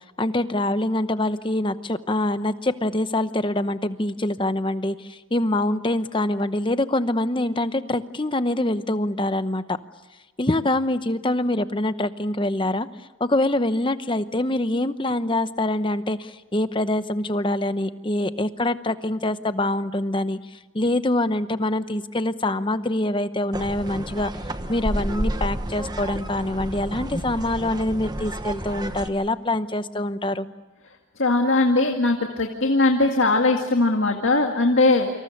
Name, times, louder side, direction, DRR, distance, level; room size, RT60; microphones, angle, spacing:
voice 1, 0.2-9.8 10.4-12.9 13.2-20.4 20.7-24.3 24.7-30.5, left 1 dB, 25° left, 11 dB, 0.9 m, -25 dB
sound 1, 23.5-29.1, right 1 dB, 20° right, 1.2 m, -31 dB
voice 2, 31.2-35.1, left 2 dB, 60° left, 2 dB, 2.1 m, -20 dB
29.0 x 26.0 x 6.6 m, 1.2 s
head